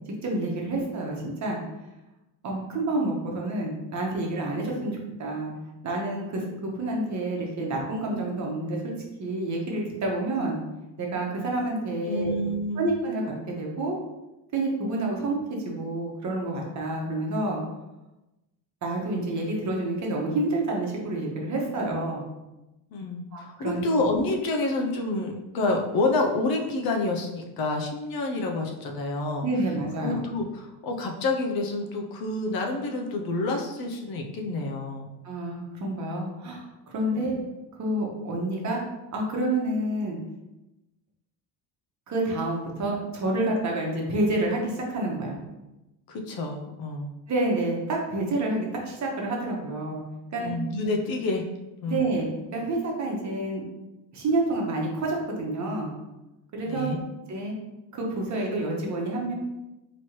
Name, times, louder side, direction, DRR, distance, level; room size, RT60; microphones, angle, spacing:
voice 1, 0.2-1.6 2.4-5.5 5.8-8.9 9.2-10.6 11.0-12.4 12.8-14.0 14.5-17.6 18.8-22.2 23.3-23.8 29.4-30.2 35.2-36.6 36.9-37.4 37.8-38.8 39.1-40.2 42.1-45.4 47.3-50.0 50.3-50.5 51.9-53.6 54.1-55.9 56.5-56.9 57.3-57.5 57.9-59.3, right 2 dB, 45° right, -1 dB, 1.1 m, -28 dB
voice 2, 12.0-12.9 22.9-29.5 30.0-35.1 37.2-37.4 46.1-47.1 50.4-51.5 51.8-52.0 56.6-57.0, left 2 dB, 60° left, 2 dB, 0.7 m, -28 dB
4.3 x 3.1 x 3.0 m, 0.99 s
cardioid pair, 130°, 41 cm